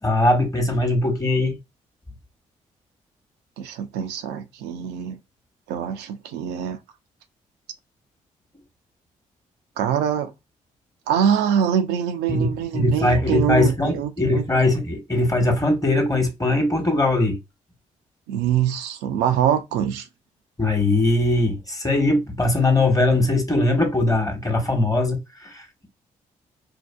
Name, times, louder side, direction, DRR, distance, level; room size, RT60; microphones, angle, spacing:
voice 1, 0.0-1.6 12.3-17.4 20.6-25.9, left 2 dB, 20° left, 1.1 m, -21 dB
voice 2, 3.6-5.2 5.7-6.8 9.8-10.3 11.1-14.4 18.3-20.1, right 9 dB, 75° right, 0.4 m, -24 dB
2.6 x 2.3 x 2.2 m
hypercardioid pair, 40°, 17 cm